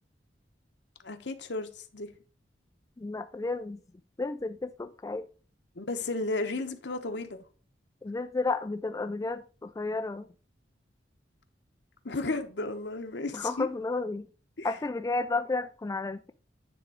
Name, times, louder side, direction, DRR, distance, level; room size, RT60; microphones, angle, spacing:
voice 1, 1.0-2.1 5.8-7.4 12.0-13.7 14.6-14.7, left 2 dB, 65° left, 1.0 m, -34 dB
voice 2, 3.0-3.8 4.2-5.3 8.0-10.3 13.3-14.3 14.6-16.3, left 3 dB, 20° left, 0.3 m, -32 dB
9.5 x 3.6 x 4.9 m
head